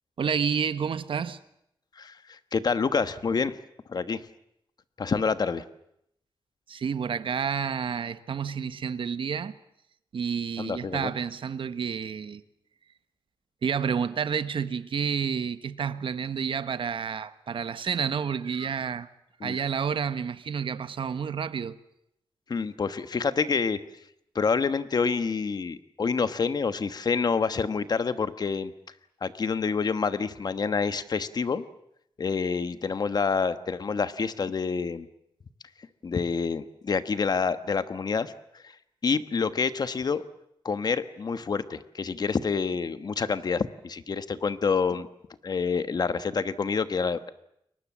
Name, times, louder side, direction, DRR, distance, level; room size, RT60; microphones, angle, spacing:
voice 1, 0.2-1.4 6.7-9.5 10.1-12.4 13.6-19.1 19.4-21.8, right 6 dB, 70° right, 1.2 m, -30 dB
voice 2, 2.0-3.6 3.9-4.3 5.0-5.6 10.6-11.1 19.4-19.6 22.5-23.8 24.3-28.7 29.2-31.6 32.2-35.1 35.8-38.8 39.0-40.2 40.6-45.1 45.4-47.3, left 5 dB, 45° left, 1.2 m, -27 dB
29.5 x 23.0 x 7.4 m
wide cardioid pair, 165°, 9 cm